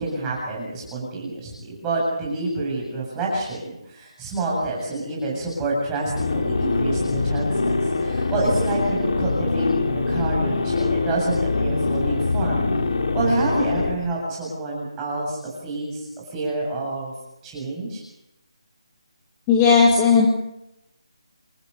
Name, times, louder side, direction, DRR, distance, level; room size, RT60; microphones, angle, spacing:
voice 1, 0.0-12.6 13.1-17.1 17.4-18.0, right 2 dB, 10° right, -3 dB, 7.7 m, -28 dB
sound 1, 6.1-13.9, left 3 dB, 60° left, 3.6 m, -23 dB
voice 2, 19.5-20.3, left 5 dB, 15° left, -1 dB, 2.2 m, -15 dB
28.0 x 13.5 x 8.4 m, 0.87 s
figure-of-eight pair, 175°, 3 cm